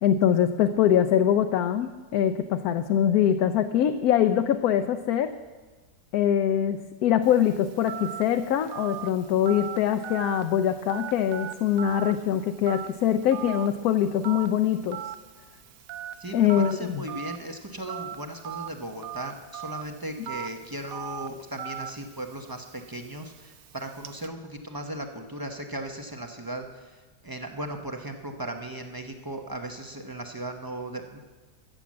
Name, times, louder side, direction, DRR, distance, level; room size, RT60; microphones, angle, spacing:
voice 1, 0.0-5.3 6.1-15.0 16.3-17.0, left 9 dB, 70° left, 7 dB, 1.0 m, -23 dB
Telephone, 7.2-24.3, right 9 dB, 65° right, 1.0 m, -40 dB
voice 2, 16.2-31.2, right 1 dB, 25° right, 4 dB, 0.5 m, -37 dB
14.5 x 7.2 x 7.4 m, 1.3 s
omnidirectional pair, 1.8 m